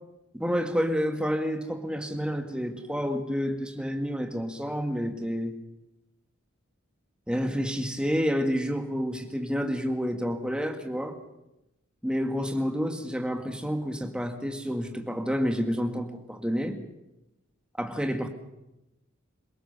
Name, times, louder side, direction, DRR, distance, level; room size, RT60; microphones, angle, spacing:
voice 1, 0.3-5.6 7.3-11.2 12.0-16.8 17.8-18.3, equal, 5° right, 5 dB, 1.9 m, -29 dB
27.0 x 17.5 x 6.8 m, 0.93 s
head